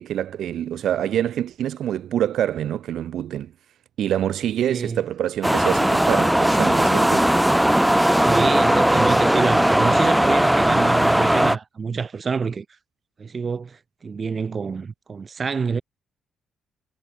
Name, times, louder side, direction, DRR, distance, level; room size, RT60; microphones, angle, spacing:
voice 1, 0.0-3.5 4.0-7.3, right 11 dB, 70° right, 0.6 m, -25 dB
voice 2, 4.6-5.0 8.2-12.6 13.2-15.8, right 5 dB, 40° right, 4.7 m, -27 dB
sound 1, 5.4-11.6, right 1 dB, 5° right, 0.7 m, -18 dB
cardioid pair, 90°, 0 cm